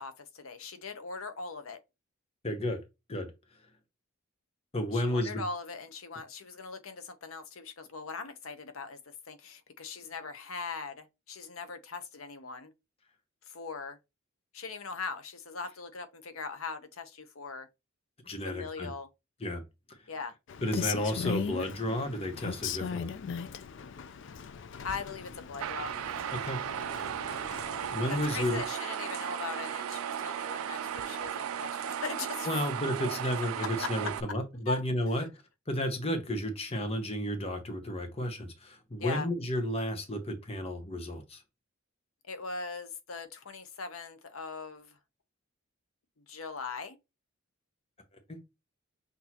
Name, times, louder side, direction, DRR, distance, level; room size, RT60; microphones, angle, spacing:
voice 1, 0.0-1.8 4.9-12.7 13.5-14.0 14.5-17.7 18.4-19.1 20.1-20.3 24.8-25.9 28.1-32.5 33.8-34.1 34.7-34.8 39.0-39.3 42.3-45.0 46.3-47.0, left 4 dB, 85° left, 0.8 m, -40 dB
voice 2, 2.4-2.8 3.1-3.3 4.7-5.4 18.2-18.9 19.4-19.6 19.9-20.1 20.6-23.1 26.3-26.6 27.6-28.6 32.4-35.3 35.7-41.4 48.3-48.4, left 1 dB, 30° left, 0.8 m, -32 dB
Rain, 20.5-28.7, left 7 dB, 60° left, 0.4 m, -39 dB
sound 1, 25.6-34.2, right 9 dB, 85° right, 0.3 m, -36 dB
5.9 x 2.7 x 2.9 m
head